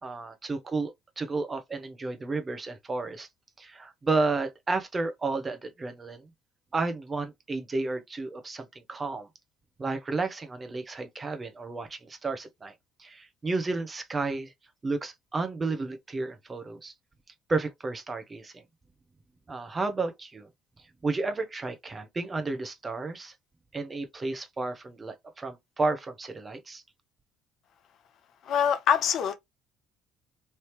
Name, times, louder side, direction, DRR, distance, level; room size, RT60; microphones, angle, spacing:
voice 1, 0.0-3.3 3.6-6.3 6.7-9.3 9.8-12.7 13.0-14.5 14.8-16.9 17.5-18.6 19.5-20.5 21.0-23.3 23.7-26.8, right 3 dB, 25° right, 0.8 m, -32 dB
voice 2, 28.5-29.3, left 8 dB, 55° left, 0.5 m, -24 dB
3.3 x 2.7 x 3.1 m
hypercardioid pair, 55°, 0 cm